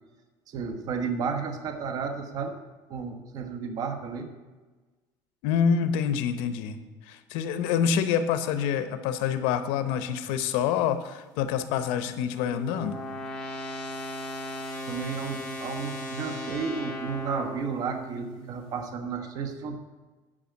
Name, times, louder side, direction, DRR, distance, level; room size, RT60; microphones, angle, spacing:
voice 1, 0.5-2.6 2.9-4.3 14.9-19.8, right 5 dB, 45° right, 6 dB, 1.1 m, -32 dB
voice 2, 5.4-6.8 7.1-13.0, left 7 dB, 90° left, 10 dB, 0.9 m, -26 dB
sound 1, 11.4-18.6, equal, 10° left, 2.2 m, -37 dB
10.0 x 5.2 x 7.9 m, 1.3 s
cardioid pair, 155°, 9 cm